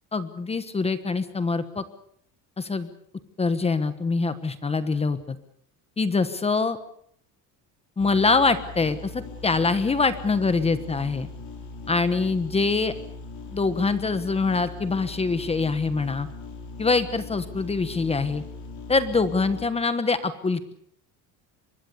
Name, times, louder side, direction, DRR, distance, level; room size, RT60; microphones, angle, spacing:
voice 1, 0.1-1.8 2.6-2.9 3.4-5.4 6.0-6.8 8.0-11.3 11.9-12.9 13.5-16.3 16.8-18.4 18.9-20.7, left 4 dB, 15° left, 12 dB, 1.2 m, -24 dB
sound 1, 8.0-19.7, left 3 dB, 65° left, 5.9 m, -40 dB
24.0 x 21.5 x 6.9 m, 0.66 s
cardioid pair, 165°, 39 cm